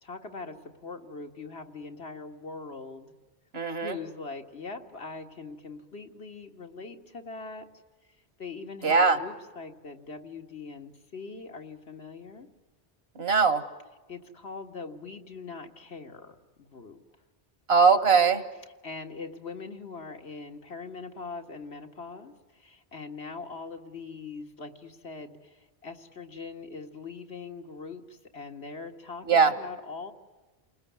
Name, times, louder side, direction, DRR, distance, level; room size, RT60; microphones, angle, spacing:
voice 1, 0.0-0.6 0.8-3.1 3.8-7.7 8.4-12.5 14.1-17.0 18.8-30.1, left 4 dB, 85° left, 4 dB, 2.2 m, -42 dB
voice 2, 3.5-4.0 8.8-9.2 13.2-13.6 17.7-18.4 29.3-29.5, right 5 dB, 75° right, 11 dB, 1.9 m, -21 dB
29.5 x 20.5 x 9.5 m, 1.3 s
omnidirectional pair, 1.1 m